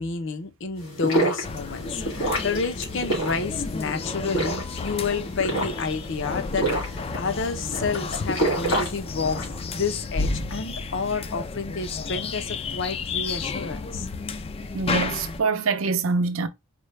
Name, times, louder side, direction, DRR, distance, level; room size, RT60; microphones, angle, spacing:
voice 1, 0.0-9.4 9.7-14.1, left 4 dB, 65° left, 0.6 m, -30 dB
sound 1, 0.8-9.6, right 1 dB, 90° left, 2.4 m, -28 dB
sound 2, 1.4-15.4, left 4 dB, 30° left, 0.3 m, -32 dB
voice 2, 14.7-16.5, right 4 dB, 75° right, 0.6 m, -24 dB
4.3 x 2.2 x 3.1 m
head